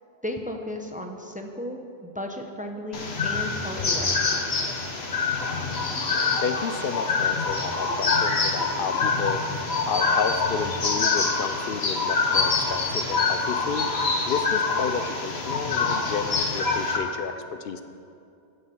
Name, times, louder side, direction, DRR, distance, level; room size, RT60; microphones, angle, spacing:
voice 1, 0.2-4.7, left 1 dB, 10° right, 3 dB, 0.7 m, -35 dB
sound 1, 2.9-17.0, left 4 dB, 85° left, 1.5 m, -25 dB
voice 2, 5.4-5.8 6.4-17.3 17.6-17.8, left 6 dB, 65° left, 9 dB, 0.8 m, -31 dB
9.6 x 9.3 x 6.8 m, 2.5 s
omnidirectional pair, 1.0 m